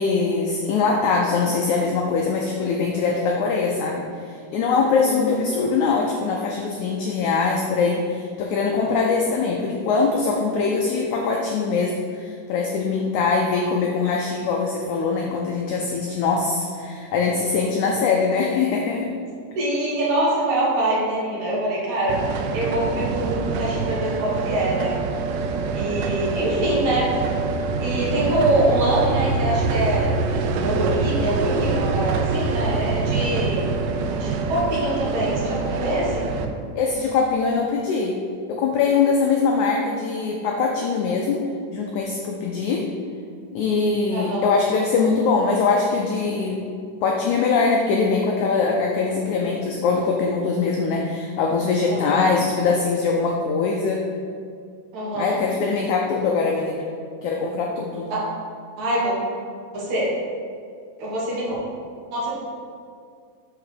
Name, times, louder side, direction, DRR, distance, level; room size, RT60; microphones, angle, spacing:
voice 1, 0.0-19.1 36.8-38.2 38.5-42.9 43.5-46.6 47.0-54.0 55.1-56.9 57.2-58.1, left 4 dB, 90° left, 0 dB, 1.7 m, -22 dB
voice 2, 5.0-5.7 19.6-25.0 25.7-27.1 27.8-33.8 34.1-36.2 44.1-44.5 51.9-52.3 54.9-55.4 58.1-58.2 58.8-59.1 59.7-60.1 61.0-61.5 62.1-62.3, right 1 dB, 60° right, -6 dB, 2.7 m, -24 dB
sound 1, 22.1-36.5, right 4 dB, 90° right, 2.4 m, -25 dB
6.4 x 4.8 x 6.5 m, 2.3 s
omnidirectional pair, 4.2 m